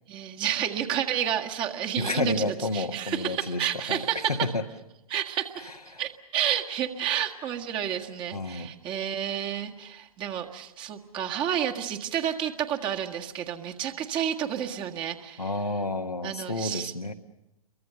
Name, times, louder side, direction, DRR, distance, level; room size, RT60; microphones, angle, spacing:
voice 1, 0.1-4.4 5.1-5.7 6.0-15.5 16.2-16.9, right 10 dB, 25° right, 4 dB, 1.7 m, -30 dB
voice 2, 2.0-4.0 4.3-4.6 5.9-6.0 8.3-8.7 15.4-17.1, left 2 dB, 85° left, 4 dB, 1.7 m, -30 dB
29.0 x 23.5 x 6.8 m, 0.93 s
figure-of-eight pair, 110°, 19 cm